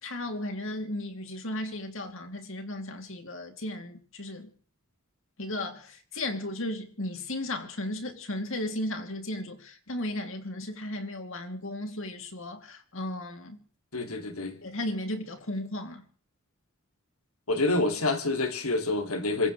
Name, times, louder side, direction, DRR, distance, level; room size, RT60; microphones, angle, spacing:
voice 1, 0.0-4.5 5.4-13.6 14.6-16.0, left 1 dB, 65° left, 2.9 m, -35 dB
voice 2, 13.9-14.6 17.5-19.5, left 2 dB, 85° left, 2.6 m, -27 dB
26.5 x 16.0 x 3.3 m
head